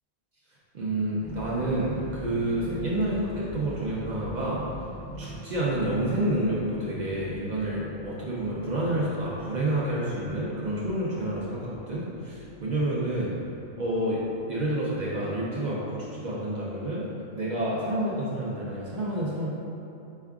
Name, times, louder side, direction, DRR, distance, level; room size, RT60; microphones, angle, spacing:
voice 1, 0.7-4.6 5.2-13.3 13.8-14.2 14.5-17.0 17.3-19.5, right 1 dB, 75° right, -6 dB, 0.4 m, -29 dB
sound 1, 1.2-15.2, right 1 dB, 40° left, 0.6 m, -43 dB
5.3 x 3.5 x 2.3 m, 2.8 s
omnidirectional pair, 1.4 m